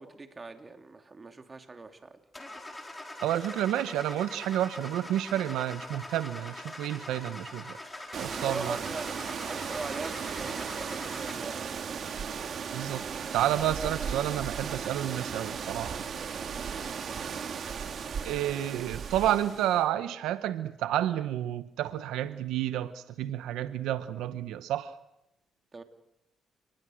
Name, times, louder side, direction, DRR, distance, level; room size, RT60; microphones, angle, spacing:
voice 1, 0.0-2.2 8.4-11.9 16.5-17.0 25.7-25.8, right 3 dB, 30° right, 6 dB, 2.7 m, -41 dB
Car / Engine starting, 2.3-11.6, left 1 dB, 15° left, 4.3 m, -43 dB
voice 2, 3.2-7.8 8.2-8.8 12.7-13.0 13.3-16.0 18.2-25.0, right 12 dB, 90° right, 12 dB, 0.9 m, -30 dB
sound 1, 8.1-19.8, right 6 dB, 55° right, 2.2 m, -36 dB
29.5 x 20.5 x 6.4 m, 0.85 s
cardioid pair, 90°, 0 cm